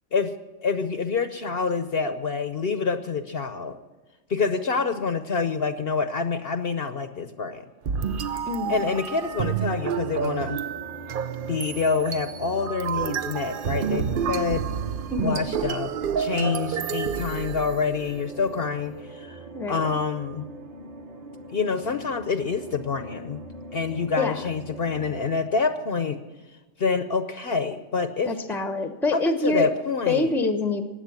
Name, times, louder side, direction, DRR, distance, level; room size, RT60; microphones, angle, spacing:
voice 1, 0.6-3.8 4.3-7.6 8.7-10.6 11.5-14.7 15.2-19.4 19.7-20.5 21.5-23.4 23.7-26.2 26.8-28.3 29.1-30.3, left 5 dB, 55° left, 9 dB, 0.9 m, -27 dB
sound 1, 7.8-18.2, right 7 dB, 55° right, 0.6 m, -29 dB
voice 2, 8.5-8.8 15.1-15.5 19.5-19.9 24.1-24.4 28.2-29.7 30.1-30.9, left 3 dB, ahead, 7 dB, 0.8 m, -26 dB
sound 2, 9.2-25.4, right 1 dB, 30° right, 1.2 m, -42 dB
15.5 x 9.8 x 7.3 m, 1.2 s
omnidirectional pair, 1.3 m